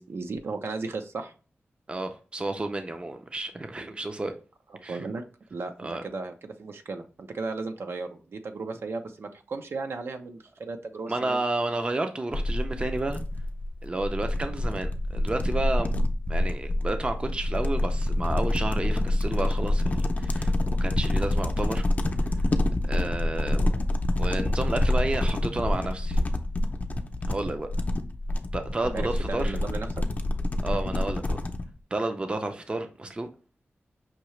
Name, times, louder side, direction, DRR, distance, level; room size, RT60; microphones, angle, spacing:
voice 1, 0.0-1.3 4.9-5.2 5.5-11.4 28.8-30.0, right 3 dB, 70° right, 0.6 m, -35 dB
voice 2, 1.9-4.3 4.8-5.1 5.8-6.0 11.1-13.2 13.8-15.9 16.3-20.5 20.8-21.8 22.8-23.7 24.2-26.2 27.3-27.7 28.5-29.6 30.6-31.4 31.9-33.3, right 2 dB, 25° right, 0.5 m, -31 dB
sound 1, 12.3-31.6, left 1 dB, 35° left, 0.5 m, -27 dB
5.8 x 2.8 x 3.1 m
wide cardioid pair, 125°, 4 cm